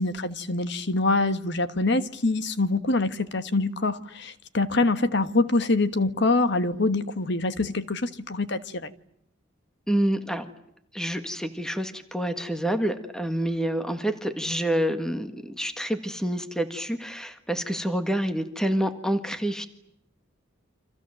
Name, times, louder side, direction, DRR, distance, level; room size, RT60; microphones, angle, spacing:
voice 1, 0.0-8.9, left 2 dB, 60° left, 1.4 m, -25 dB
voice 2, 9.9-10.4 10.9-19.7, right 1 dB, 5° left, 1.6 m, -27 dB
29.5 x 26.0 x 7.7 m
head